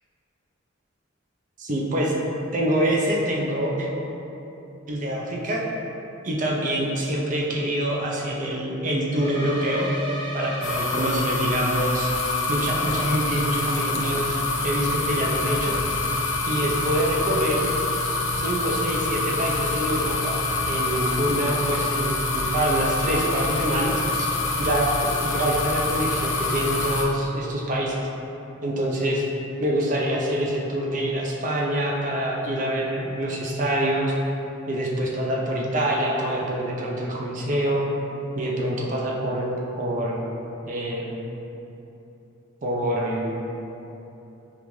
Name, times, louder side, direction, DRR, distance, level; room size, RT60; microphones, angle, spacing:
voice 1, 1.6-2.1 2.5-3.9 4.9-5.6 6.2-9.9 10.3-12.1 12.5-15.8 16.5-17.7 18.3-20.4 20.7-24.3 24.6-28.1 28.6-29.2 29.6-34.2 34.7-37.8 38.4-39.5 39.8-40.2 40.7-41.2 42.6-43.5, right 1 dB, 40° right, -2 dB, 0.5 m, -25 dB
sound 1, 9.1-11.4, right 1 dB, 10° left, 0.9 m, -33 dB
sound 2, 10.6-27.0, left 2 dB, 75° left, 0.6 m, -26 dB
5.2 x 2.5 x 3.0 m, 3.0 s
head